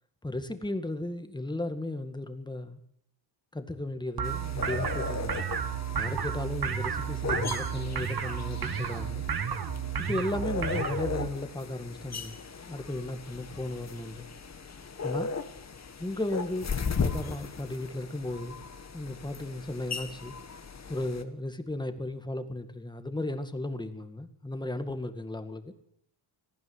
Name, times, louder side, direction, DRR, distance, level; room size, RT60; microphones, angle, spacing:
voice 1, 0.2-2.8 3.5-5.5 6.0-9.2 10.1-12.3 12.7-14.3 15.0-15.3 16.0-16.7 17.0-18.6 18.9-20.3 20.9-25.7, left 1 dB, 10° left, 8 dB, 2.0 m, -35 dB
sound 1, 4.2-21.2, left 5 dB, 30° left, 1.8 m, -37 dB
sound 2, 4.2-11.3, right 7 dB, 50° right, 1.9 m, -32 dB
19.5 x 15.0 x 9.8 m, 0.70 s
cardioid pair, 130°, 49 cm